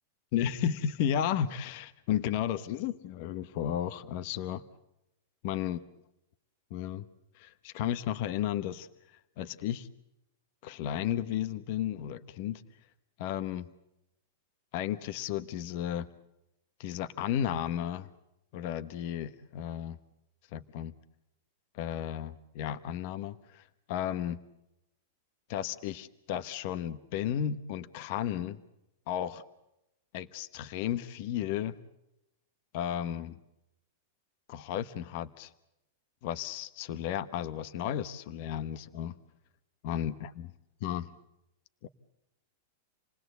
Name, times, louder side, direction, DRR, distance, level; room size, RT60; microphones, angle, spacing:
voice 1, 0.3-4.6 5.4-5.8 6.7-7.0 7.3-8.9 9.4-9.9 10.6-12.6 13.2-13.7 14.7-16.1 16.8-18.1 18.5-20.0 20.5-20.9 21.7-24.4 25.5-28.6 29.1-29.4 30.1-31.8 32.7-33.4 34.5-35.5 36.2-39.1 39.8-40.5 40.8-41.1 41.8-41.9, left 10 dB, 45° left, 13 dB, 1.0 m, -33 dB
28.5 x 19.5 x 8.0 m, 0.88 s
supercardioid pair, 160°, 0 cm